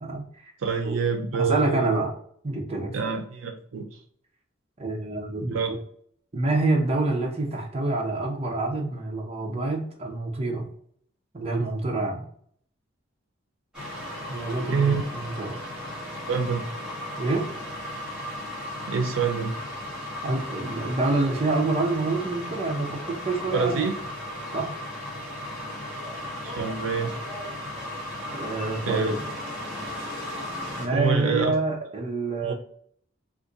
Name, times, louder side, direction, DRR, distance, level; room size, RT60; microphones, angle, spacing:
voice 1, 0.0-0.5 0.8-1.0 1.3-2.1 2.4-3.1 4.8-5.7 6.3-10.7 11.3-12.2 14.3-15.6 17.2-17.5 20.2-23.8 24.5-24.7 28.3-29.2 30.8-32.5, right 2 dB, 30° right, -1 dB, 0.6 m, -27 dB
voice 2, 0.6-2.0 2.9-3.9 5.5-5.7 14.6-15.0 16.3-16.6 18.9-19.5 23.5-23.9 26.4-27.1 28.9-29.1 30.9-31.5 32.4-32.5, right 5 dB, 75° right, 5 dB, 0.5 m, -26 dB
sound 1, 13.7-30.9, left 1 dB, 5° right, 1.2 m, -36 dB
2.5 x 2.5 x 3.8 m, 0.62 s
head